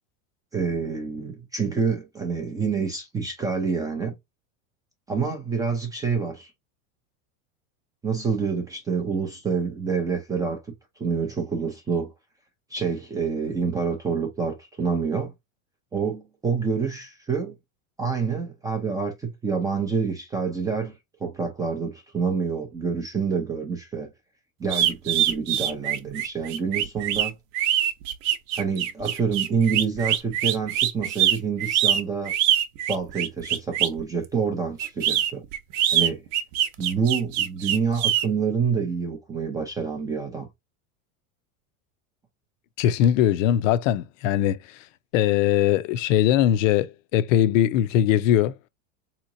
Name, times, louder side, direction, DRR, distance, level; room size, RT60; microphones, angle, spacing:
voice 1, 0.5-4.1 5.1-6.5 8.0-10.6 11.0-12.1 12.7-15.3 15.9-17.6 18.0-20.9 21.2-24.1 24.6-27.3 28.5-32.3 32.9-35.4 35.9-36.2 36.8-40.5, right 5 dB, 10° right, 0.3 m, -27 dB
sound 1, 24.7-34.0 34.8-38.3, right 11 dB, 50° right, 0.7 m, -24 dB
voice 2, 42.8-44.8 45.1-48.5, left 11 dB, 65° left, 0.6 m, -21 dB
3.7 x 2.9 x 2.5 m
supercardioid pair, 140°, 42 cm